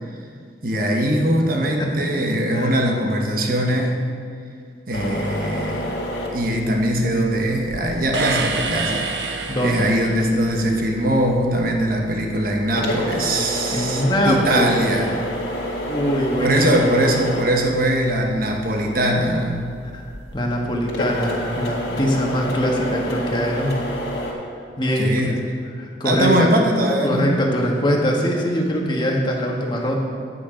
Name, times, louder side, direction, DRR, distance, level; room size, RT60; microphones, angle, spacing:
voice 1, 0.6-4.0 4.9-5.9 6.3-15.2 16.4-19.7 25.0-25.3 26.0-27.3, right 1 dB, 55° right, 1 dB, 1.1 m, -21 dB
sound 1, 4.9-24.3, equal, 65° left, 2.0 m, -31 dB
sound 2, 8.1-10.4, right 3 dB, 75° right, 0.9 m, -26 dB
voice 2, 9.5-9.8 13.7-14.8 15.9-16.8 19.9-20.0 20.3-23.7 24.8-25.1 25.8-26.5 27.0-30.0, equal, 25° left, -1 dB, 1.4 m, -22 dB
9.7 x 8.4 x 5.1 m, 2.2 s
head